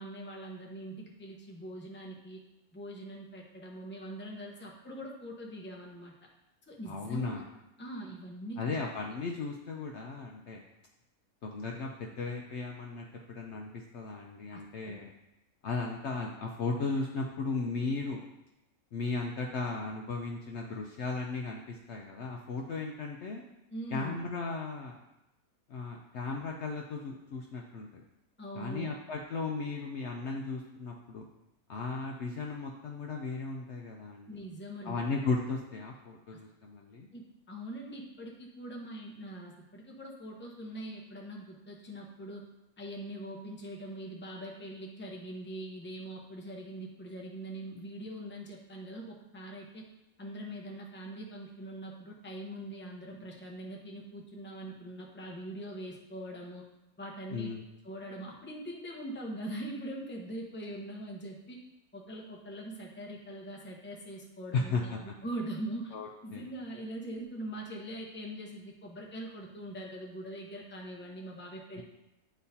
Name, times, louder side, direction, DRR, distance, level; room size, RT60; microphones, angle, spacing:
voice 1, 0.0-2.4 2.7-6.1 6.7-7.3 7.8-8.8 14.5-15.0 23.7-24.2 28.4-28.9 34.3-35.0 36.3-36.4 37.1-42.4 42.8-49.8 50.2-56.7 57.0-57.5 57.8-61.6 61.9-65.9 66.2-71.8, right 1 dB, 10° left, -1 dB, 0.7 m, -42 dB
voice 2, 6.9-7.4 8.6-10.6 11.4-15.1 15.6-18.2 18.9-23.4 23.9-25.0 25.7-28.0 28.5-31.2 31.7-34.4 34.8-37.1 57.3-57.6 64.5-65.0 65.9-66.4 71.8-71.9, left 4 dB, 60° left, 0 dB, 0.8 m, -36 dB
10.0 x 4.1 x 2.8 m, 0.93 s
omnidirectional pair, 1.5 m